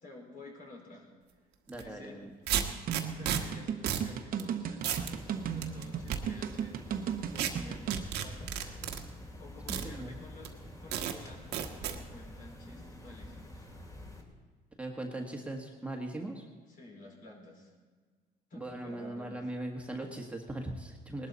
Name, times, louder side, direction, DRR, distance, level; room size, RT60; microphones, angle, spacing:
voice 1, 0.0-1.1 1.7-2.3 3.1-6.8 7.3-10.5 10.8-13.7 16.7-17.7 18.5-19.5, left 2 dB, 55° left, -1 dB, 5.0 m, -51 dB
voice 2, 1.7-2.3 9.7-10.1 14.8-16.4 18.5-21.3, right 1 dB, 5° right, 0 dB, 1.5 m, -39 dB
sound 1, 1.7-1.8 2.5-3.4 3.9-4.1 4.4-4.5 4.8-5.1 5.6-6.2 7.4-7.5 7.9-9.0 9.7-9.9 10.4-10.5 10.9-11.1 11.5-12.0, right 10 dB, 80° right, 1.4 m, -32 dB
sound 2, 2.9-8.0, right 8 dB, 60° right, 1.1 m, -35 dB
sound 3, 4.8-14.2, left 1 dB, 20° left, 2.8 m, -48 dB
19.5 x 12.0 x 4.1 m, 1.5 s
cardioid pair, 110°, 17 cm